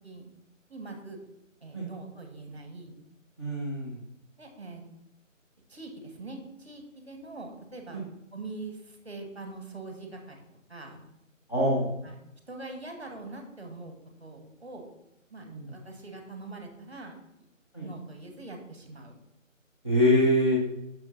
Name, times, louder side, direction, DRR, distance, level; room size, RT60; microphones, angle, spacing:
voice 1, 0.7-1.2 1.6-3.0 4.4-4.8 5.7-8.0 8.3-10.4 10.7-11.0 12.0-12.1 12.5-13.9 14.2-14.8 15.3-17.1 17.8-19.1, right 3 dB, 25° right, 3 dB, 1.3 m, -43 dB
voice 2, 3.4-4.0 7.9-8.0 11.5-11.9 15.4-15.7 17.7-17.9 19.8-20.6, left 1 dB, 20° left, -6 dB, 1.3 m, -24 dB
6.3 x 6.0 x 5.9 m, 0.84 s
figure-of-eight pair, 180°, 40 cm